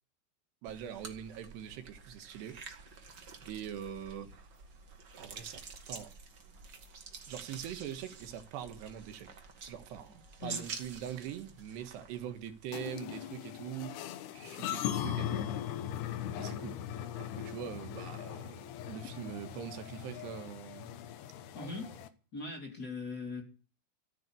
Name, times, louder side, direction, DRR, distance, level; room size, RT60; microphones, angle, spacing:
voice 1, 0.6-2.6 3.5-4.6 5.2-6.1 7.3-9.3 9.7-14.1 14.3-15.5 16.1-16.8 17.1-20.9 21.6-21.8, right 9 dB, 90° right, 3.7 m, -43 dB
sound 1, 0.7-12.9, right 5 dB, 45° right, 1.4 m, -49 dB
sound 2, 12.7-22.1, left 10 dB, 75° left, 3.1 m, -39 dB
voice 2, 21.5-21.9 22.3-23.4, left 3 dB, 25° left, 3.1 m, -40 dB
14.0 x 9.8 x 8.2 m
omnidirectional pair, 4.7 m